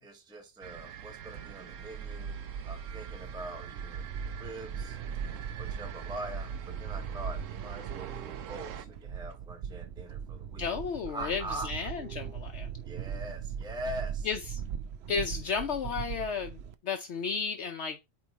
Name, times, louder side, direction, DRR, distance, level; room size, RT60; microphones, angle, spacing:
voice 1, 0.0-2.4 2.6-4.1 4.4-5.0 5.6-10.7 11.1-11.7 12.9-14.3, right 1 dB, 5° right, 1.0 m, -42 dB
sound 1, 0.6-8.9, right 9 dB, 85° right, 1.1 m, -46 dB
sound 2, 0.8-16.7, right 7 dB, 65° right, 0.8 m, -39 dB
voice 2, 10.6-12.7 14.2-14.4 15.1-16.6 16.8-18.1, left 5 dB, 65° left, 1.0 m, -33 dB
8.6 x 3.1 x 4.0 m
omnidirectional pair, 1.3 m